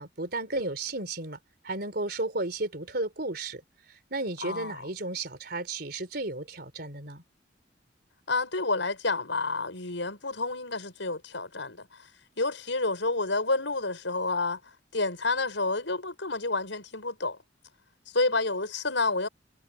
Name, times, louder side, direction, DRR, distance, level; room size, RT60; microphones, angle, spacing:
voice 1, 0.0-1.4 1.6-3.6 3.9-7.2, right 2 dB, 55° right, 3.9 m, -33 dB
voice 2, 4.4-4.8 8.3-11.9 12.4-14.6 14.9-17.4 18.1-19.3, left 3 dB, 75° left, 6.3 m, -29 dB
head